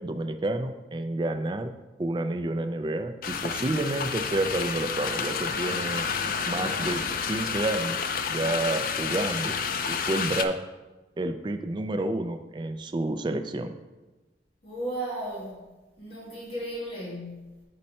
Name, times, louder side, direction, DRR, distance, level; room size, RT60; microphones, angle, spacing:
voice 1, 0.0-1.7 2.0-6.1 6.5-7.0 7.3-9.6 9.9-10.6 11.2-13.8, right 2 dB, 25° right, 7 dB, 0.3 m, -29 dB
sound 1, 3.2-10.5, left 6 dB, 50° left, 0.4 m, -30 dB
voice 2, 6.5-6.9 14.6-15.7 16.0-17.6, right 1 dB, 30° left, -7 dB, 2.0 m, -36 dB
5.5 x 5.2 x 4.2 m, 1.1 s
head